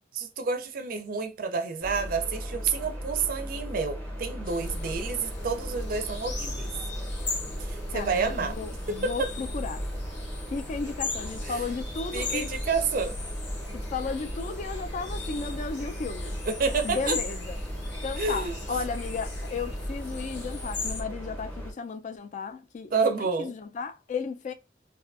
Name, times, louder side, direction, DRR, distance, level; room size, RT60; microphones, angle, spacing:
voice 1, 0.1-6.7 7.6-8.5 8.9-9.3 11.5-11.6 12.1-13.2 16.5-17.2 18.2-18.6 22.9-23.5, right 4 dB, 55° right, 0.4 m, -29 dB
sound 1, 1.8-21.7, equal, 10° left, 0.7 m, -38 dB
sound 2, 4.4-21.0, left 2 dB, 75° left, 0.7 m, -37 dB
voice 2, 7.9-9.9 10.5-12.5 13.7-16.4 16.8-17.6 18.0-24.5, left 4 dB, 45° left, 0.3 m, -34 dB
2.5 x 2.3 x 2.4 m
head